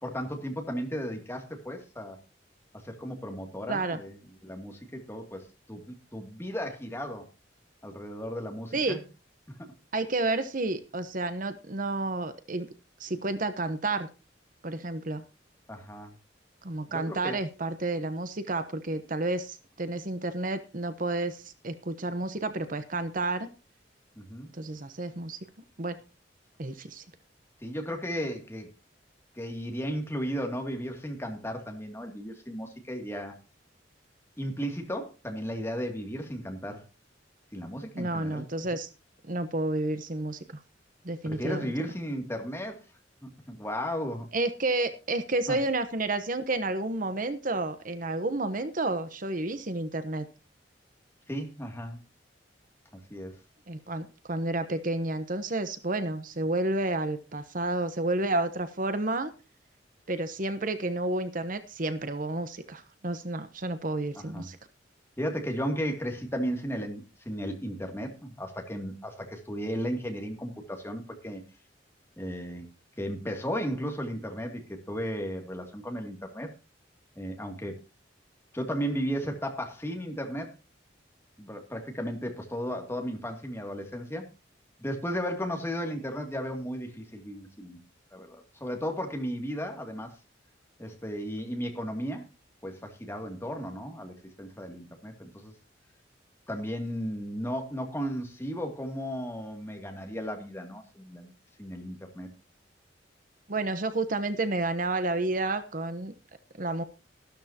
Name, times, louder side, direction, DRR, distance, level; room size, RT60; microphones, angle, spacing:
voice 1, 0.0-2.2 2.8-4.2 4.4-7.2 7.8-9.0 9.5-9.6 15.7-16.1 16.9-17.4 24.2-24.5 27.6-28.7 29.3-33.3 34.4-36.8 37.5-38.5 41.2-42.8 43.2-44.3 45.5-45.6 51.3-52.0 53.1-53.3 64.3-64.5 65.2-71.4 72.2-72.7 73.0-76.5 77.2-77.8 78.5-80.5 81.4-84.3 84.8-87.8 88.1-90.1 90.8-92.2 92.6-95.5 96.5-101.3 101.6-102.3, equal, 15° left, 3 dB, 2.5 m, -35 dB
voice 2, 3.7-4.0 8.7-9.0 9.9-12.7 13.0-14.1 14.6-15.2 16.6-23.5 24.5-25.4 25.8-25.9 26.6-27.0 37.9-38.9 39.3-40.6 41.0-41.7 44.3-50.2 53.7-59.3 60.1-64.6 103.5-106.1 106.6-106.8, right 2 dB, 50° right, 10 dB, 1.0 m, -30 dB
13.5 x 12.5 x 2.9 m, 0.31 s
head